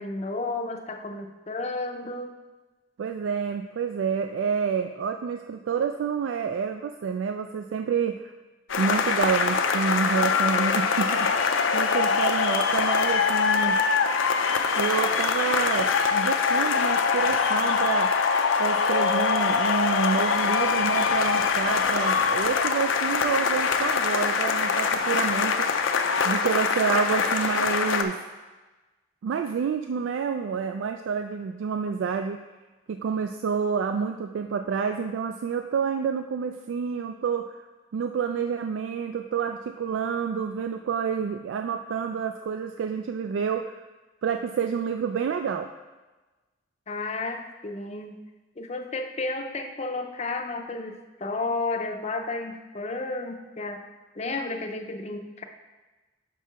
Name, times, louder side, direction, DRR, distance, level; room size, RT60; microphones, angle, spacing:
voice 1, 0.0-2.3 12.1-12.2 46.9-48.2 48.6-53.8 54.2-55.4, left 3 dB, 35° left, 5 dB, 0.5 m, -32 dB
voice 2, 3.0-8.3 8.8-13.8 14.7-18.2 18.6-25.7 26.2-28.2 29.2-32.4 32.9-37.6 37.9-43.8 44.2-45.7, right 6 dB, 80° right, 7 dB, 0.3 m, -28 dB
sound 1, 8.7-28.0, left 5 dB, 90° left, 0.5 m, -23 dB
5.9 x 4.6 x 5.6 m, 1.2 s
head